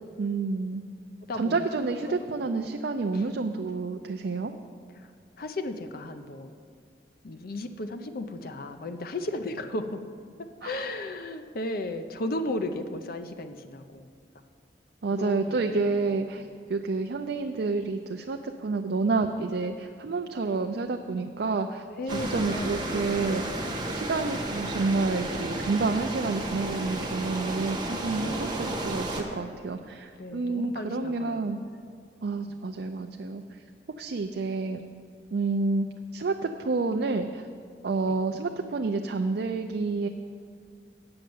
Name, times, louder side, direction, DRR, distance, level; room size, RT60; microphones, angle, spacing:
voice 1, 0.2-0.8 1.4-4.5 10.6-10.8 15.0-23.4 23.9-31.6 32.2-33.6 34.0-34.8 35.3-35.9 36.1-37.5 37.8-40.1, right 3 dB, 65° right, 5 dB, 0.4 m, -29 dB
voice 2, 1.3-1.7 2.1-2.2 3.1-3.2 5.0-5.1 5.4-6.5 7.2-10.0 10.6-14.1 15.2-16.1 22.0-23.6 30.2-31.5 38.1-38.2, left 2 dB, 55° left, 8 dB, 0.6 m, -35 dB
sound 1, 22.1-29.2, right 1 dB, 25° right, 1.5 m, -32 dB
8.7 x 6.5 x 7.8 m, 2.1 s
head